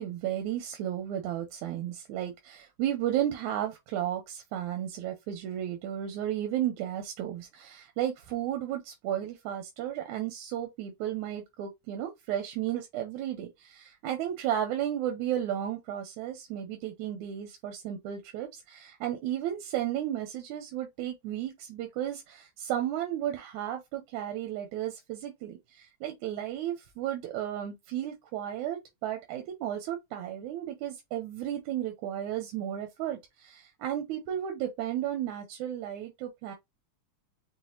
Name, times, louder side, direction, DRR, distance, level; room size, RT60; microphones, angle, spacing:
voice 1, 0.0-36.5, right 11 dB, 90° right, 2.2 m, -34 dB
6.1 x 2.5 x 2.7 m
omnidirectional pair, 3.3 m